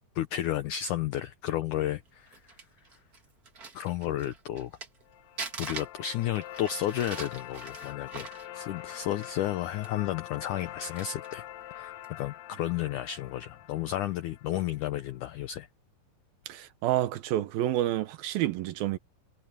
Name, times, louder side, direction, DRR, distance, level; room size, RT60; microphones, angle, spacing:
voice 1, 0.2-2.4 3.7-4.7 5.6-11.5 11.7-15.7, left 12 dB, 85° left, 1.8 m, -32 dB
Crumpling crinkling, 2.1-5.0 5.4-9.5 9.8-9.9 10.5-11.4 12.0-12.2, right 4 dB, 35° right, 1.7 m, -43 dB
sound 1, 5.1-15.1, left 13 dB, 70° left, 1.7 m, -45 dB
voice 2, 16.5-19.0, right 13 dB, 75° right, 2.6 m, -29 dB
omnidirectional pair, 4.6 m